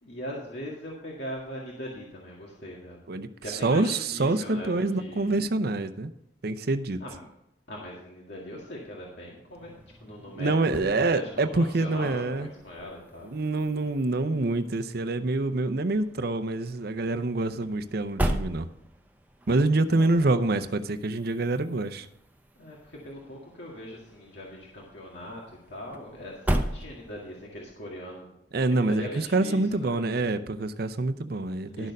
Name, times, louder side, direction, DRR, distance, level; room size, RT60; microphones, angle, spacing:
voice 1, 0.0-3.0 3.4-5.4 7.0-7.3 7.7-10.5 10.9-13.3 19.9-20.3 22.6-28.4 28.7-30.3 31.7-31.9, equal, 70° left, -3 dB, 2.0 m, -41 dB
voice 2, 3.1-6.1 6.4-7.0 10.3-12.5 13.3-18.7 19.5-22.1 28.5-31.9, right 2 dB, 60° right, 9 dB, 0.6 m, -26 dB
sound 1, 9.4-27.5, right 1 dB, 10° right, 0.8 m, -38 dB
12.0 x 6.6 x 5.3 m, 0.79 s
head